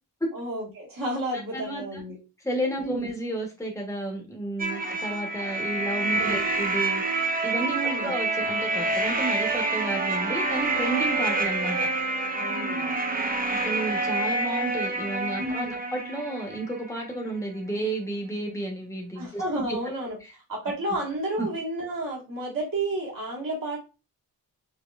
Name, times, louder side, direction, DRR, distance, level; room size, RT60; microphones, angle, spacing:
voice 1, 0.3-2.2 2.8-3.1 6.1-6.5 7.7-8.2 12.3-13.0 15.4-15.8 19.1-20.2 20.5-23.8, right 1 dB, 55° right, -4 dB, 1.6 m, -31 dB
voice 2, 1.5-2.0 2.4-11.8 13.6-19.4 19.7-19.8 21.4-21.5, right 1 dB, 10° left, 0 dB, 1.0 m, -32 dB
sound 1, 4.6-17.3, right 3 dB, 20° right, 0.5 m, -27 dB
5.1 x 3.0 x 2.4 m, 0.30 s
wide cardioid pair, 135°, 39 cm